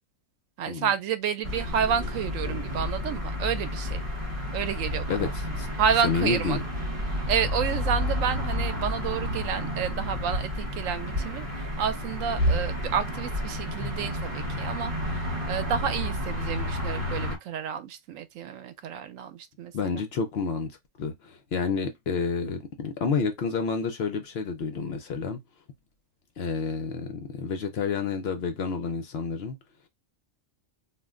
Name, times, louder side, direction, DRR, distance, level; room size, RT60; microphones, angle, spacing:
voice 1, 0.6-4.0 4.5-5.4 5.8-6.6 7.1-20.0, right 8 dB, 85° right, 1.0 m, -30 dB
sound 1, 1.4-17.4, left 1 dB, 45° right, 1.1 m, -30 dB
voice 2, 5.1-5.7 6.0-6.6 19.7-25.4 26.4-29.6, left 5 dB, 60° left, 0.8 m, -29 dB
2.5 x 2.1 x 3.5 m
omnidirectional pair, 1.3 m